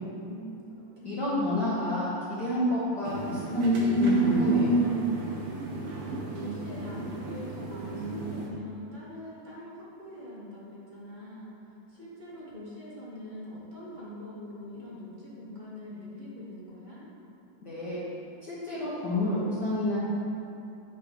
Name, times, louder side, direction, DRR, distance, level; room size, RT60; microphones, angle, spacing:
voice 1, 0.2-1.6 5.5-5.9 6.3-11.5 11.9-17.0, left 1 dB, 25° right, -9 dB, 1.1 m, -43 dB
voice 2, 1.0-4.8 17.6-18.0 18.4-20.0, left 1 dB, 65° left, -10 dB, 1.0 m, -29 dB
sound 1, 3.0-8.5, right 3 dB, 70° right, 1.3 m, -29 dB
9.1 x 5.5 x 4.2 m, 3.0 s
omnidirectional pair, 3.8 m